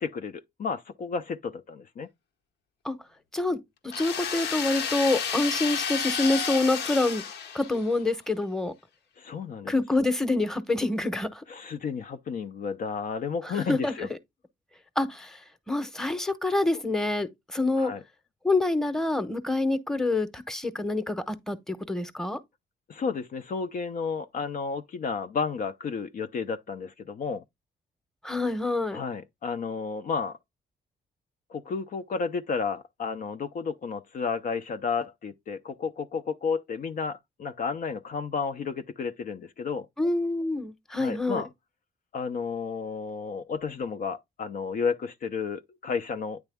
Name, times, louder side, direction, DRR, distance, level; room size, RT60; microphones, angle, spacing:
voice 1, 0.0-2.1 9.2-9.7 11.5-14.1 17.8-18.0 22.9-27.4 28.9-30.4 31.5-39.9 41.0-41.5 42.1-46.4, left 5 dB, 55° left, 0.5 m, -32 dB
sound 1, 3.9-8.0, left 7 dB, 75° left, 0.9 m, -31 dB
voice 2, 3.9-7.2 7.5-8.7 9.7-11.4 13.7-13.9 15.0-15.3 15.7-17.9 18.4-22.4 28.2-29.0 40.0-41.4, left 2 dB, 5° left, 0.9 m, -26 dB
9.1 x 3.4 x 3.4 m
cardioid pair, 85°, 18 cm